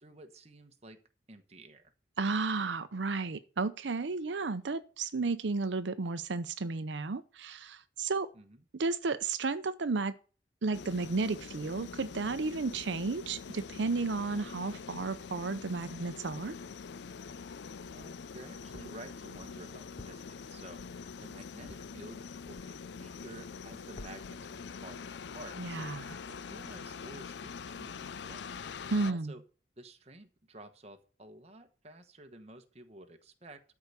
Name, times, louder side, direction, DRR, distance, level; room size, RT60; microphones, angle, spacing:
voice 1, 0.0-1.0 1.3-1.9 8.3-8.6 17.9-20.8 21.2-26.0 26.2-27.3 27.7-28.6 29.0-29.4 29.8-33.6, right 1 dB, 35° right, 1.2 m, -51 dB
voice 2, 2.2-8.3 8.7-10.2 10.6-16.6 25.6-26.2 28.9-29.3, right 3 dB, 90° right, 0.7 m, -33 dB
sound 1, 10.7-29.1, left 5 dB, 75° left, 0.5 m, -44 dB
sound 2, 17.8-18.3 18.7-22.9 23.2-23.7 24.0-24.5, left 2 dB, 35° left, 0.7 m, -53 dB
13.0 x 4.8 x 6.8 m
head